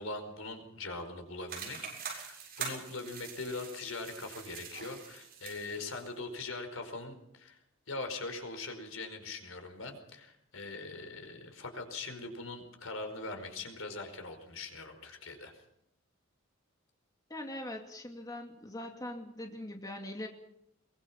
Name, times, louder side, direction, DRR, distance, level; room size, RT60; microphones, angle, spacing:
voice 1, 0.0-7.6 7.9-15.6, left 3 dB, 80° left, 6 dB, 4.9 m, -42 dB
sound 1, 1.5-6.1, right 6 dB, 45° right, 7.2 m, -44 dB
voice 2, 17.3-20.3, left 1 dB, 20° left, 3 dB, 2.4 m, -42 dB
22.5 x 22.5 x 5.8 m, 0.77 s
head